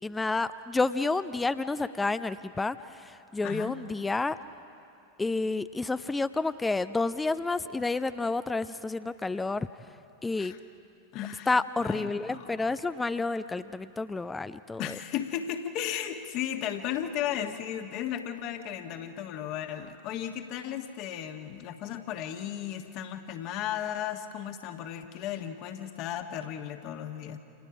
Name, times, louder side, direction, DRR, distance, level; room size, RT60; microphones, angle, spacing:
voice 1, 0.0-4.4 5.2-9.7 10.2-10.5 11.5-15.0, left 3 dB, 10° left, 14 dB, 0.5 m, -30 dB
voice 2, 3.4-3.8 10.3-10.6 11.1-11.5 11.8-12.8 14.8-27.4, left 10 dB, 40° left, 6 dB, 1.6 m, -35 dB
29.5 x 28.5 x 5.0 m, 2.7 s
figure-of-eight pair, 90°, 0 cm